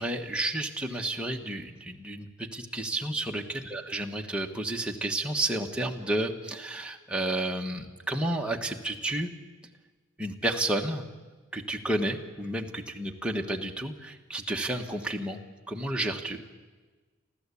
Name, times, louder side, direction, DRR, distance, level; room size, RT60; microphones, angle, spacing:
voice 1, 0.0-9.3 10.2-11.0 11.5-15.4 15.7-16.4, right 1 dB, 5° right, 1 dB, 1.5 m, -31 dB
29.5 x 13.0 x 8.5 m, 1.3 s
head